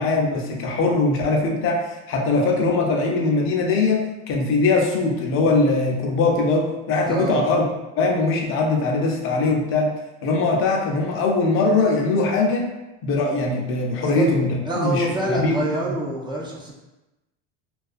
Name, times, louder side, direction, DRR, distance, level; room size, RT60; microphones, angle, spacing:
voice 1, 0.0-7.6 8.0-9.9 10.2-12.7 13.0-14.5 14.8-15.9, left 3 dB, 40° left, 1 dB, 0.5 m, -21 dB
voice 2, 7.1-7.4 13.9-14.3 14.7-16.7, right 1 dB, 15° right, -4 dB, 0.3 m, -26 dB
2.4 x 2.2 x 2.4 m, 1.0 s
supercardioid pair, 115°, 33 cm